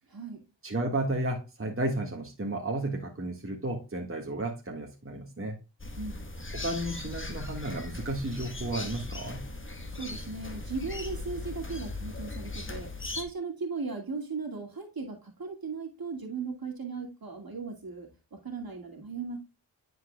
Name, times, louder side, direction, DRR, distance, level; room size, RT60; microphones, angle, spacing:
voice 1, 0.1-0.4 6.0-6.2 10.0-19.4, right 4 dB, 50° right, 2.3 m, -37 dB
voice 2, 0.6-5.6 6.5-9.4, right 1 dB, 30° right, 1.7 m, -33 dB
sound 1, 5.8-13.2, left 2 dB, 25° left, 1.4 m, -38 dB
10.0 x 4.7 x 2.3 m
cardioid pair, 50°, 47 cm